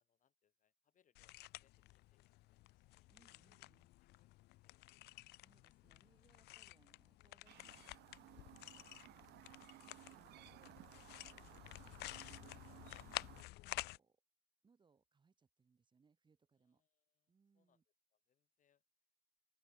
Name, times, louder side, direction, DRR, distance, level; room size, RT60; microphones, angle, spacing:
voice 1, 0.0-3.1 3.4-3.7 4.2-5.5 16.5-17.8 18.1-18.8, left 9 dB, 50° left, 3.9 m, -83 dB
sound 1, 1.1-14.0, left 19 dB, 80° left, 0.5 m, -52 dB
voice 2, 3.1-3.9 5.4-13.3 13.6-14.2 14.6-16.8 17.3-17.8, right 5 dB, 30° right, 2.5 m, -75 dB
Chirp tweet, 7.5-13.4, right 17 dB, 80° right, 1.2 m, -60 dB
open air
cardioid pair, 110°, 17 cm